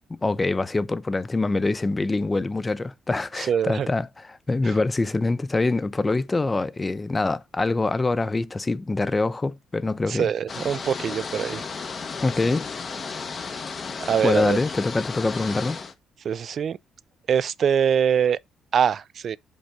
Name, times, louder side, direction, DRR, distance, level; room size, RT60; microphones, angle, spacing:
voice 1, 0.1-10.3 12.2-12.7 14.2-15.8, left 3 dB, 20° left, 0.5 m, -24 dB
voice 2, 3.4-3.9 10.1-11.6 14.0-14.6 16.2-16.8 17.3-18.4 18.7-19.4, right 8 dB, 55° right, 0.3 m, -23 dB
sound 1, 10.5-15.9, left 5 dB, 40° left, 0.9 m, -34 dB
5.3 x 3.5 x 5.7 m
cardioid pair, 90°, 0 cm